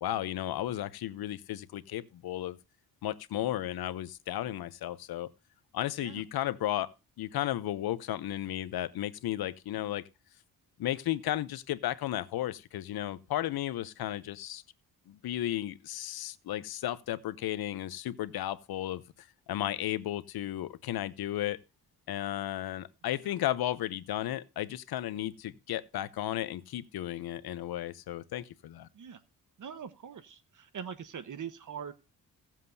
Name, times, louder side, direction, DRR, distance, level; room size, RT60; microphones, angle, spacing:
voice 1, 0.0-2.6 3.0-5.3 5.7-6.9 7.2-10.1 10.8-14.6 15.1-19.0 19.5-21.6 22.1-28.9, left 13 dB, 85° left, 0.8 m, -34 dB
voice 2, 29.6-31.9, right 7 dB, 55° right, 1.2 m, -42 dB
17.0 x 7.5 x 2.7 m
cardioid pair, 100°, 36 cm